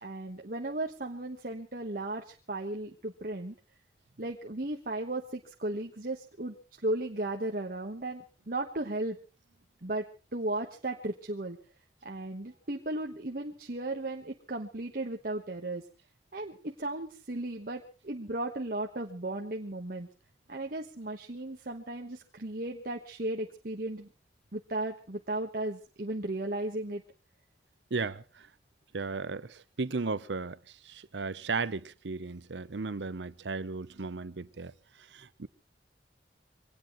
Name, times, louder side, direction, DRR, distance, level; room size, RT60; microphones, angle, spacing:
voice 1, 0.0-3.5 4.2-9.2 9.8-10.0 10.3-11.6 12.0-15.8 16.3-20.1 20.5-24.1 24.5-27.0, right 2 dB, 55° right, 1.3 m, -35 dB
voice 2, 27.9-28.5 28.9-30.6 30.8-34.7 35.1-35.5, right 4 dB, 85° right, 0.8 m, -35 dB
24.0 x 18.0 x 3.1 m
head